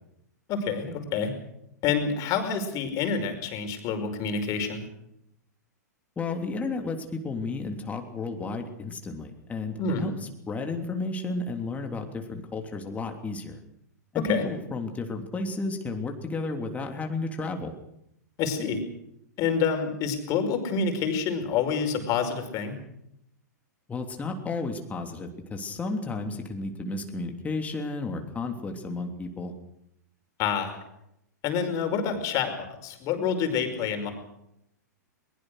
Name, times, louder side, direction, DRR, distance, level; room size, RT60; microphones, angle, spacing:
voice 1, 0.5-1.3 1.8-4.9 9.8-10.1 14.1-14.5 18.4-18.8 19.4-22.8 30.4-30.8 31.4-34.1, left 6 dB, 35° left, 6 dB, 5.1 m, -27 dB
voice 2, 6.2-10.1 10.5-13.6 14.1-17.7 23.9-29.5, left 3 dB, 15° left, 4 dB, 3.2 m, -32 dB
22.0 x 21.0 x 6.5 m, 0.79 s
figure-of-eight pair, 105°, 10 cm